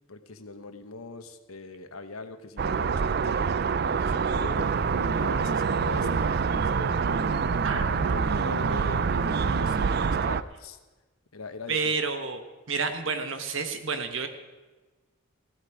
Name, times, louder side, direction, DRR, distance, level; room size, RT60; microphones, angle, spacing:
voice 1, 0.1-4.7 5.1-7.0 7.3-10.8 11.3-11.9, left 3 dB, 85° left, 9 dB, 1.1 m, -41 dB
sound 1, 2.6-10.4, right 6 dB, 45° right, 0.4 m, -26 dB
sound 2, 4.6-10.2, right 2 dB, 85° right, 0.9 m, -34 dB
voice 2, 7.6-8.1 8.7-8.8 11.7-12.4 12.7-14.3, right 5 dB, 65° right, 8 dB, 1.3 m, -30 dB
15.5 x 12.5 x 4.9 m, 1.2 s
head